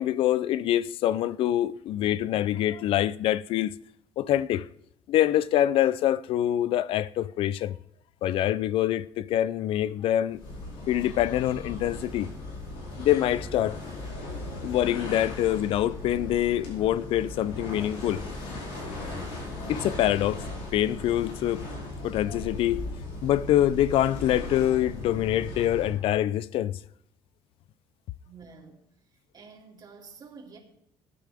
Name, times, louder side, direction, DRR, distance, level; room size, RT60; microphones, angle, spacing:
voice 1, 0.0-3.8 4.2-4.7 5.1-7.7 8.2-10.4 10.9-12.3 13.0-13.8 14.6-18.2 19.7-20.4 20.7-21.6 22.0-22.8 23.2-26.8, left 12 dB, 70° left, 0.5 m, -25 dB
sound 1, 10.3-26.1, left 2 dB, 90° left, 4.7 m, -37 dB
voice 2, 28.2-28.9 29.3-30.6, right 5 dB, 45° right, 3.1 m, -48 dB
19.5 x 9.3 x 3.5 m
cardioid pair, 110°, 10 cm